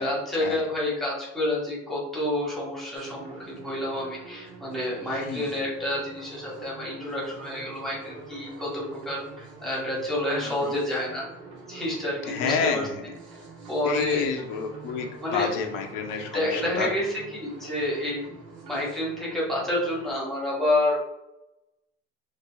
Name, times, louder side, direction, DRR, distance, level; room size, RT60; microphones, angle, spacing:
voice 1, 0.0-11.2 11.7-12.9 13.7-14.3 15.2-15.5 16.3-18.2 18.6-21.0, left 1 dB, ahead, -6 dB, 1.1 m, -29 dB
sound 1, 2.9-20.1, right 4 dB, 75° right, 1.4 m, -45 dB
voice 2, 12.3-12.9 13.8-15.1 15.3-16.9, left 6 dB, 80° left, 3 dB, 0.7 m, -29 dB
4.2 x 2.5 x 2.2 m, 0.91 s
cardioid pair, 145°, 31 cm